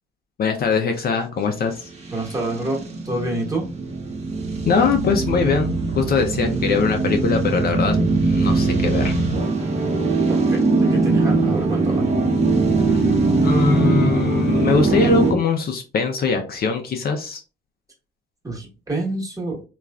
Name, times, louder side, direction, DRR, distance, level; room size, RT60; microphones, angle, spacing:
voice 1, 0.4-1.9 4.7-8.0 8.3-9.1 12.9-13.0 13.4-17.4, left 5 dB, 50° left, 5 dB, 0.5 m, -22 dB
sound 1, 2.0-15.3, right 3 dB, 35° right, 0.8 m, -21 dB
voice 2, 2.1-3.6 10.3-12.1 18.4-19.6, right 2 dB, 15° right, -2 dB, 1.2 m, -27 dB
3.0 x 2.4 x 2.3 m, 0.33 s
cardioid pair, 90°, 20 cm